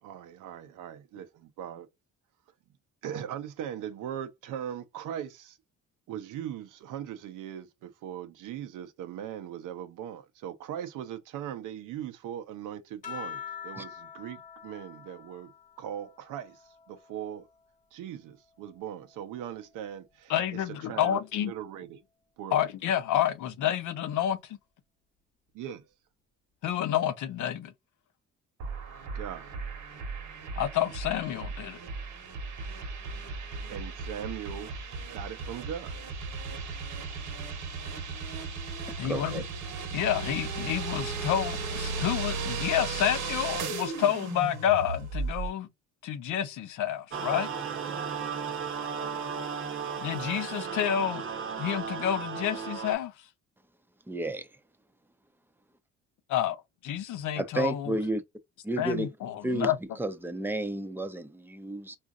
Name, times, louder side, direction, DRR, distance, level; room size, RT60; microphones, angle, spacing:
voice 1, 0.0-1.9 3.0-5.6 6.1-17.5 17.9-22.0 22.4-22.6 25.5-25.8 29.1-29.5 33.6-34.7 35.1-36.0 47.8-48.1, right 10 dB, 90° right, 0.6 m, -40 dB
sound 1, 13.0-17.8 18.3-20.0 21.2-21.7, left 9 dB, 25° left, 0.9 m, -46 dB
voice 2, 20.3-21.5 22.5-24.6 26.6-27.7 30.6-31.8 39.0-39.4 39.9-45.7 46.0-47.5 50.0-51.2 51.6-53.1 56.3-56.6 56.8-57.9 58.8-59.8, left 10 dB, 75° left, 0.6 m, -29 dB
sound 2, 28.6-45.5, right 4 dB, 75° right, 1.0 m, -36 dB
voice 3, 39.0-39.4 54.1-54.5 57.4-58.2 58.6-59.1 59.4-59.7 60.0-62.0, right 2 dB, 5° right, 0.5 m, -31 dB
sound 3, 47.1-52.9, right 6 dB, 45° right, 0.7 m, -35 dB
3.8 x 2.5 x 2.4 m
cardioid pair, 90°, 30 cm